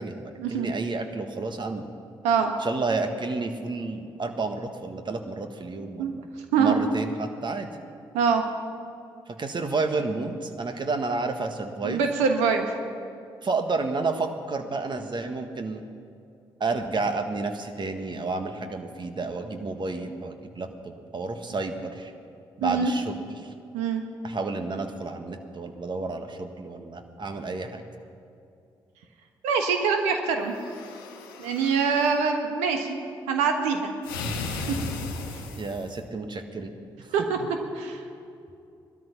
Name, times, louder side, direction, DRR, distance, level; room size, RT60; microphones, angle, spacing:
voice 1, 0.0-1.9 2.6-6.3 6.6-7.7 9.4-12.0 13.4-15.8 16.6-22.1 22.6-23.5 24.2-27.8 35.6-36.7 37.0-37.1 37.4-37.5, right 3 dB, 45° right, 6 dB, 1.6 m, -31 dB
voice 2, 11.8-12.7 22.6-22.9 23.7-24.0 29.4-30.6 31.4-32.9 33.3-33.9 34.5-34.7 37.1-37.4 37.7-38.0, right 6 dB, 80° right, 5 dB, 1.4 m, -24 dB
sound 1, 30.4-32.2 34.0-36.0, left 3 dB, 90° left, 1.1 m, -35 dB
19.0 x 12.5 x 5.8 m, 2.5 s
hypercardioid pair, 40°, 11 cm